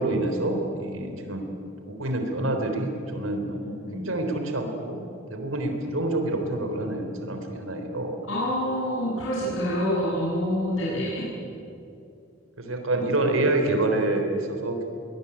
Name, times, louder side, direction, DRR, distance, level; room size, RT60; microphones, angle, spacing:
voice 1, 0.0-1.4 1.8-5.0 5.3-8.2 11.0-11.4 12.6-14.9, right 2 dB, 80° right, 4 dB, 3.6 m, -27 dB
voice 2, 3.6-4.0 8.3-11.2, equal, 75° left, -7 dB, 7.3 m, -27 dB
22.0 x 20.0 x 9.9 m, 2.6 s
head